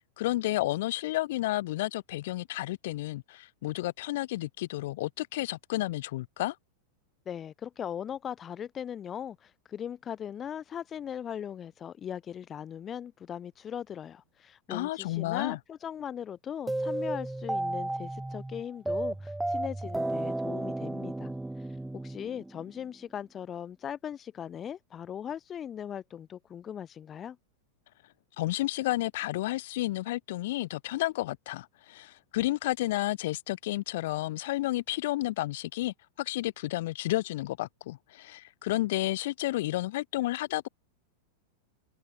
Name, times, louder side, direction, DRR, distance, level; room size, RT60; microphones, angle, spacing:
voice 1, 0.2-6.5 14.7-15.6 28.4-40.7, left 17 dB, 55° left, 3.0 m, -31 dB
voice 2, 7.3-21.3 21.9-27.4, left 9 dB, 25° left, 2.8 m, -39 dB
sound 1, 16.7-22.8, right 2 dB, 5° right, 1.0 m, -33 dB
open air
figure-of-eight pair, 90°, 0 cm